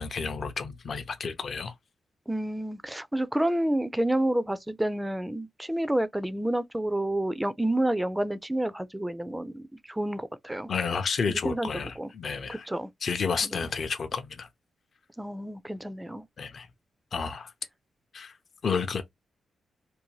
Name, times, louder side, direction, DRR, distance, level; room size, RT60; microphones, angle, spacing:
voice 1, 0.0-1.7 10.7-12.7 13.0-14.5 16.4-16.7 17.1-17.5 18.1-18.3 18.6-19.1, left 5 dB, 55° left, 0.5 m, -31 dB
voice 2, 2.3-10.7 11.3-11.7 12.0-12.1 12.5-12.9 13.4-13.6 15.2-16.2, right 1 dB, 10° right, 0.3 m, -29 dB
2.6 x 2.1 x 2.9 m
cardioid pair, 90°, 0 cm